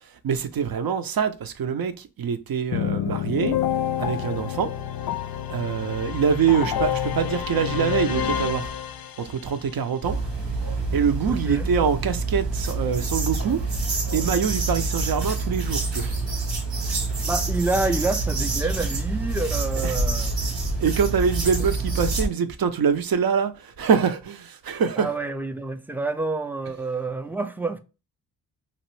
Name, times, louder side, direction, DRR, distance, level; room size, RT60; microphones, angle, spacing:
voice 1, 0.0-3.6 4.0-4.7 5.5-8.7 9.2-10.2 10.9-13.6 14.1-16.2 16.8-17.0 19.8-19.9 20.8-25.1, right 7 dB, 55° right, 0.6 m, -24 dB
sound 1, 2.7-9.5, left 10 dB, 55° left, 0.5 m, -28 dB
sound 2, 10.0-22.3, right 3 dB, 80° right, 1.4 m, -27 dB
voice 2, 11.3-11.7 17.2-20.3 25.0-27.8, right 3 dB, 5° right, 0.4 m, -28 dB
3.0 x 2.5 x 3.1 m
cardioid pair, 50°, 43 cm